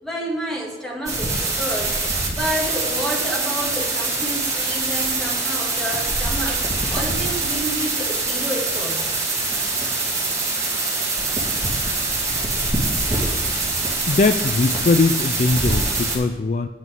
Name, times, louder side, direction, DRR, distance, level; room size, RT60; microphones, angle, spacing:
voice 1, 0.0-2.0 2.3-6.6 6.9-9.1, equal, ahead, -3 dB, 2.2 m, -29 dB
sound 1, 1.1-16.2, right 3 dB, 20° right, 2.5 m, -24 dB
voice 2, 14.1-16.7, left 3 dB, 40° left, 10 dB, 0.4 m, -20 dB
9.2 x 8.2 x 5.4 m, 1.4 s
head